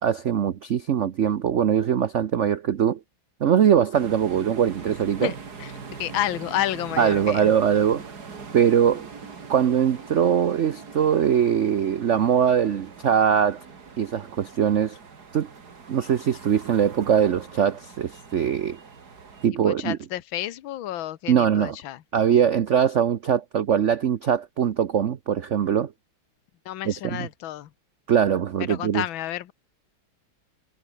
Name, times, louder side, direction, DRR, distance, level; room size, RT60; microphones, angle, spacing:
voice 1, 0.0-3.0 3.4-5.3 7.0-8.0 8.5-9.1 9.5-13.6 14.0-15.0 15.3-15.5 15.9-18.8 19.4-20.0 21.3-21.8 22.1-25.9 26.9-27.3 28.1-29.0, right 8 dB, 60° right, 0.7 m, -22 dB
sound 1, 3.9-19.5, right 5 dB, 45° right, 2.9 m, -42 dB
voice 2, 6.0-7.5 19.6-22.0 26.7-27.7 28.7-29.5, left 13 dB, 70° left, 1.8 m, -30 dB
omnidirectional pair, 2.4 m